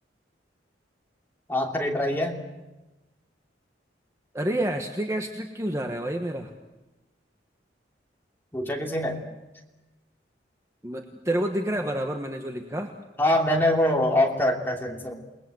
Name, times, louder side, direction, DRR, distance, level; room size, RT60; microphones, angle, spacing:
voice 1, 1.5-2.4 8.5-9.2 13.2-15.1, left 1 dB, 10° left, 0 dB, 3.0 m, -24 dB
voice 2, 4.3-6.5 10.8-12.9, right 1 dB, 15° right, 4 dB, 1.3 m, -29 dB
28.5 x 20.0 x 7.9 m, 1.1 s
head